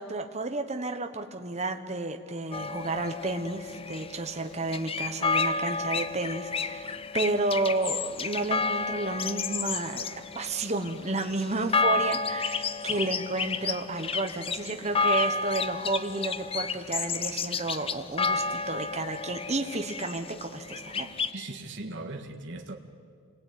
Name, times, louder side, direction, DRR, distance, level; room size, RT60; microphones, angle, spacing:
voice 1, 0.0-10.1 10.3-21.1, right 2 dB, 30° right, 1.2 m, -31 dB
sound 1, 2.5-21.3, left 4 dB, 25° left, 0.6 m, -31 dB
voice 2, 21.3-22.7, right 2 dB, 55° right, 1.8 m, -39 dB
27.0 x 20.5 x 9.4 m
head